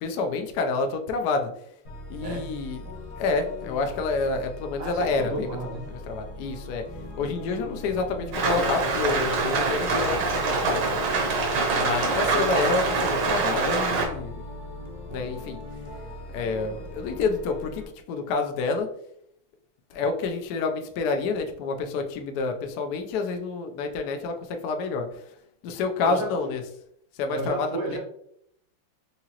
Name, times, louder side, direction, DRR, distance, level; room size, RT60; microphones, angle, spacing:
voice 1, 0.0-1.5 2.1-2.9 3.2-5.5 5.9-6.9 7.2-10.9 11.7-14.4 15.1-15.6 16.3-18.9 19.9-25.2 25.6-26.6 27.2-27.8, left 4 dB, 80° left, 5 dB, 0.8 m, -28 dB
sound 1, 1.9-17.9, left 2 dB, 50° left, 0.9 m, -40 dB
voice 2, 2.2-2.6 4.8-5.9 12.1-12.5 15.1-15.2 26.0-26.3 27.3-28.0, right 2 dB, 85° right, -2 dB, 2.1 m, -33 dB
Rain, 8.3-14.1, right 3 dB, 65° right, 1.4 m, -24 dB
4.8 x 2.9 x 2.8 m, 0.71 s
omnidirectional pair, 2.4 m